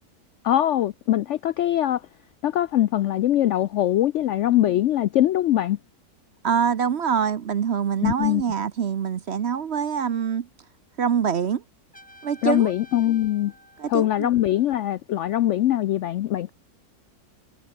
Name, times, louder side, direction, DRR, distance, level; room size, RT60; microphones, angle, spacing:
voice 1, 0.4-2.0 2.4-5.8 8.0-8.4 12.4-13.5 13.9-16.5, left 12 dB, 70° left, 0.7 m, -22 dB
voice 2, 6.4-10.5 11.0-11.6 12.2-12.7 13.8-14.3, right 7 dB, 50° right, 0.9 m, -25 dB
Trumpet, 11.9-14.8, equal, 5° left, 5.8 m, -51 dB
omnidirectional pair, 1.7 m